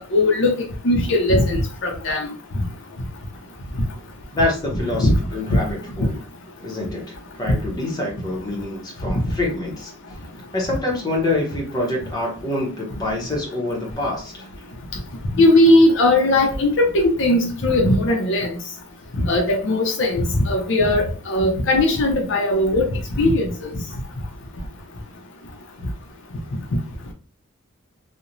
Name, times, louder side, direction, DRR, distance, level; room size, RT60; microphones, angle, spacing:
voice 1, 0.1-0.5 0.8-2.3 5.0-5.2 15.4-18.5 19.2-22.9 23.2-23.5, left 1 dB, 55° left, 1 dB, 0.5 m, -18 dB
voice 2, 4.3-6.2 6.6-9.9 10.5-14.5, left 2 dB, 20° left, -2 dB, 0.7 m, -26 dB
2.9 x 2.1 x 2.5 m, 0.37 s
head